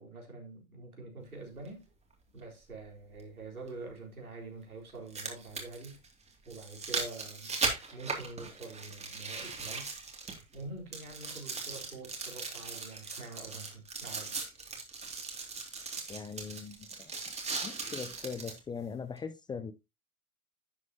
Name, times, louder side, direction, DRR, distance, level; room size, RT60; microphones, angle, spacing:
voice 1, 0.0-1.9 2.3-6.0 6.5-9.9 10.5-14.4, right 3 dB, 90° right, 4.0 m, -46 dB
sound 1, 1.6-1.7 3.7-3.8 4.9-10.6 10.9-18.6 19.2-19.3, right 4 dB, 15° right, 2.6 m, -38 dB
voice 2, 16.1-17.1 17.6-19.7, left 6 dB, 10° left, 0.5 m, -40 dB
11.5 x 7.6 x 2.9 m
figure-of-eight pair, 100°, 42 cm